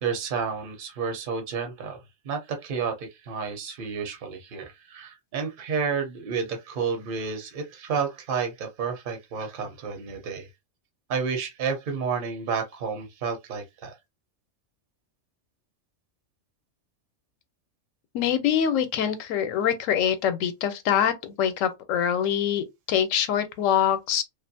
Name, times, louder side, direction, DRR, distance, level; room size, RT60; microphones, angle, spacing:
voice 1, 0.0-2.0 2.2-10.5 11.1-13.9, right 6 dB, 50° right, 0.8 m, -30 dB
voice 2, 18.1-24.2, left 9 dB, 85° left, 1.0 m, -24 dB
2.5 x 2.4 x 2.6 m
omnidirectional pair, 1.3 m